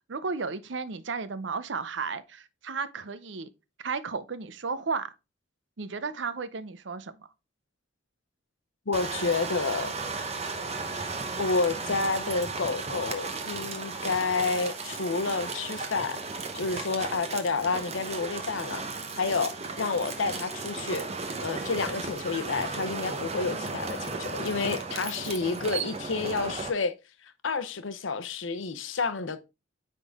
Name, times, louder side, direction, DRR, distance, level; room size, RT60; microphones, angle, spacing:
voice 1, 0.1-3.5 3.8-5.1 5.8-7.3, right 4 dB, 65° right, 0.6 m, -34 dB
voice 2, 8.9-9.9 11.4-16.2 16.5-18.8 19.2-21.1 21.4-26.9 27.4-29.4, left 4 dB, 80° left, 0.7 m, -29 dB
sound 1, 8.9-26.7, right 4 dB, 35° right, 0.9 m, -35 dB
9.2 x 3.8 x 3.5 m
head